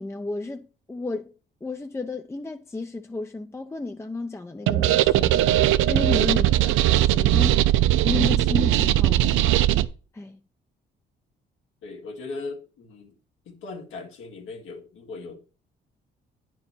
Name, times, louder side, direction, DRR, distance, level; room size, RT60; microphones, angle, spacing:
voice 1, 0.0-1.3 1.6-7.7 8.0-9.3 10.1-10.4, left 2 dB, 15° left, 0.6 m, -32 dB
sound 1, 4.7-9.8, right 14 dB, 85° right, 0.5 m, -20 dB
voice 2, 11.8-13.1 13.5-15.4, left 3 dB, 85° left, 2.0 m, -38 dB
9.5 x 4.5 x 5.6 m
cardioid pair, 90°, 20 cm